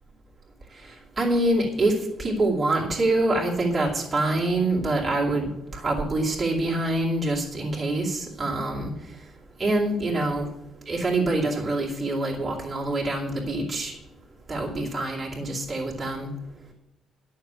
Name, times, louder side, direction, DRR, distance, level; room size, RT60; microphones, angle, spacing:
voice 1, 0.8-8.9 9.6-10.5 10.9-13.9 14.5-16.3, right 2 dB, 20° right, -5 dB, 2.6 m, -25 dB
12.0 x 6.6 x 8.0 m, 0.84 s
cardioid pair, 180°, 0 cm